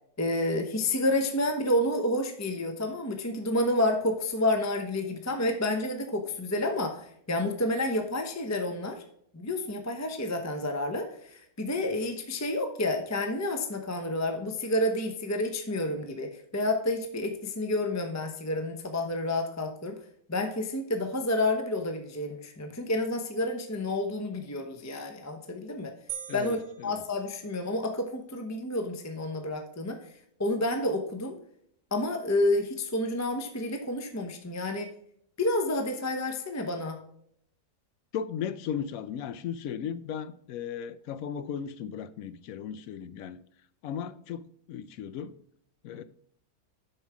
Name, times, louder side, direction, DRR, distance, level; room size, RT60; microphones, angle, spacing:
voice 1, 0.2-9.0 9.3-20.0 20.3-25.9 26.3-30.0 30.4-31.4 31.9-34.9 35.4-37.0, left 1 dB, 15° left, 0.6 m, -29 dB
sound 1, 26.1-27.9, right 11 dB, 60° right, 1.3 m, -43 dB
voice 2, 26.3-27.0 38.1-43.4 43.8-44.4 44.7-45.3 45.8-46.0, left 8 dB, 70° left, 1.0 m, -36 dB
7.7 x 5.5 x 4.7 m
omnidirectional pair, 1.6 m